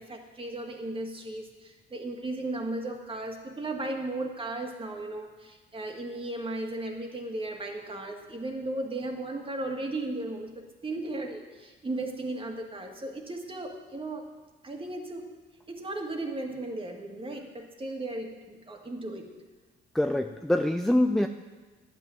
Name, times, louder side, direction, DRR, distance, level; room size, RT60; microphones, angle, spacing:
voice 1, 0.0-14.3 14.6-15.3 15.7-19.3, right 2 dB, 25° right, 2 dB, 2.0 m, -36 dB
voice 2, 19.9-21.3, left 1 dB, ahead, 7 dB, 0.4 m, -24 dB
11.5 x 6.1 x 9.0 m, 1.3 s
cardioid pair, 90°, 20 cm